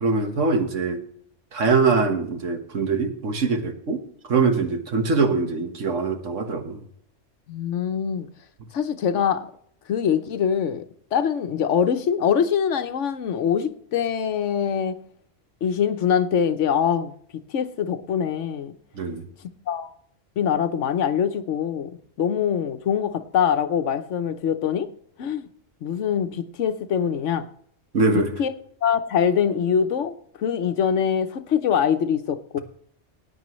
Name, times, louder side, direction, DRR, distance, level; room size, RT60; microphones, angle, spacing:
voice 1, 0.0-1.0 1.5-4.0 4.3-6.8 18.9-19.3 27.9-28.3, right 4 dB, 75° right, 5 dB, 1.7 m, -23 dB
voice 2, 7.5-8.3 8.7-9.5 9.9-10.8 11.1-15.0 15.6-18.7 19.7-19.9 20.4-21.9 22.2-24.9 25.2-25.5 25.8-27.4 28.1-28.5 28.8-32.6, left 8 dB, 75° left, 10 dB, 1.1 m, -23 dB
19.0 x 9.0 x 3.1 m, 0.66 s
omnidirectional pair, 1.3 m